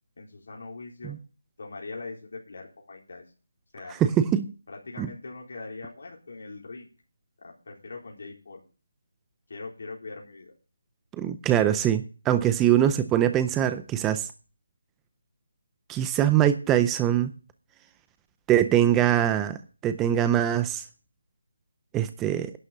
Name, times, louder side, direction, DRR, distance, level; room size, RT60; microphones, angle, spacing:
voice 1, 0.2-1.2 1.6-3.2 3.7-4.0 4.7-6.9 7.4-8.6 9.5-10.5, left 3 dB, 55° left, -2 dB, 3.9 m, -41 dB
voice 2, 4.0-4.5 5.0-5.1 11.2-14.3 15.9-17.3 18.5-20.8 21.9-22.5, right 11 dB, 10° right, 10 dB, 0.4 m, -23 dB
11.5 x 6.4 x 7.4 m, 0.35 s
figure-of-eight pair, 170°, 0 cm